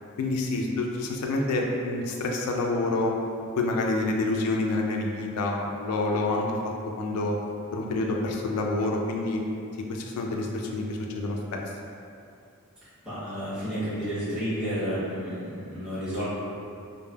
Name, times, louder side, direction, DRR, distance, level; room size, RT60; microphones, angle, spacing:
voice 1, 0.2-3.1 3.6-7.4 7.7-9.4 9.9-11.6, left 2 dB, 85° left, 0 dB, 0.3 m, -28 dB
voice 2, 12.8-16.2, equal, 5° right, -14 dB, 0.8 m, -31 dB
3.2 x 2.1 x 2.2 m, 2.5 s
head